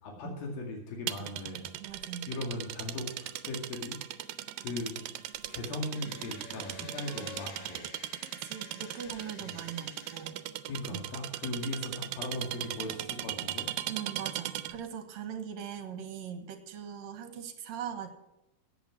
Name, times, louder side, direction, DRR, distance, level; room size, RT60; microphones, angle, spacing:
voice 1, 0.0-4.0 4.6-5.1 5.5-7.8 9.4-9.5 10.7-13.7, left 2 dB, 80° left, 1 dB, 4.1 m, -39 dB
sound 1, 1.1-14.9, right 13 dB, 85° right, 2.4 m, -38 dB
voice 2, 1.8-2.3 8.2-10.4 10.9-11.0 13.9-18.1, right 8 dB, 60° right, 8 dB, 2.3 m, -41 dB
sound 2, 5.9-10.3, left 3 dB, 55° left, 3.3 m, -50 dB
15.5 x 9.1 x 6.0 m, 0.92 s
omnidirectional pair, 4.1 m